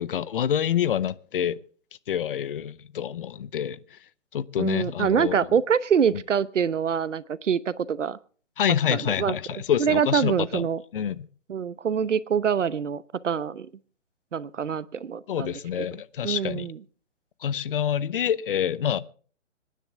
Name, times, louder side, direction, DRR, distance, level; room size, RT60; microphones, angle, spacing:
voice 1, 0.0-1.6 2.1-4.0 4.3-5.4 6.1-6.2 8.6-10.6 10.9-11.3 15.3-16.7 17.4-19.0, left 9 dB, 45° left, 0.8 m, -27 dB
voice 2, 4.6-8.2 8.9-9.3 9.8-10.8 11.5-13.7 14.3-15.5 16.2-16.8, right 7 dB, 70° right, 0.9 m, -25 dB
26.0 x 10.0 x 3.4 m
figure-of-eight pair, 140°, 38 cm